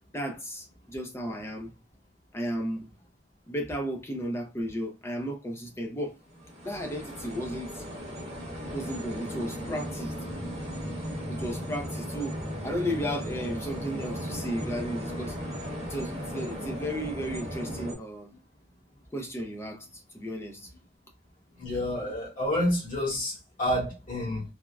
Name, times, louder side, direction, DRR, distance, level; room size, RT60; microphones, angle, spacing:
voice 1, 0.1-1.7 2.3-2.9 3.5-6.2 6.6-7.8 8.7-10.2 11.3-12.4 12.6-15.4 15.9-18.3 19.1-20.7, equal, 15° left, 0.4 m, -34 dB
sound 1, 6.4-17.9, equal, 30° right, 0.9 m, -36 dB
voice 2, 21.6-24.4, left 1 dB, 45° left, 1.3 m, -29 dB
3.4 x 2.1 x 2.2 m
head